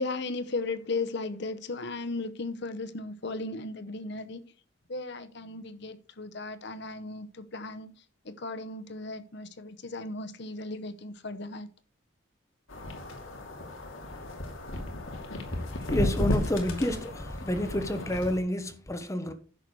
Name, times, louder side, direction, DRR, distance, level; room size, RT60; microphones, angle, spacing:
voice 1, 0.0-4.4 4.9-7.9 8.2-11.7, left 3 dB, 55° left, 0.9 m, -36 dB
sound 1, 12.7-18.4, left 1 dB, 75° left, 2.4 m, -34 dB
voice 2, 15.9-19.3, left 1 dB, 15° left, 0.9 m, -29 dB
10.5 x 6.8 x 4.7 m
head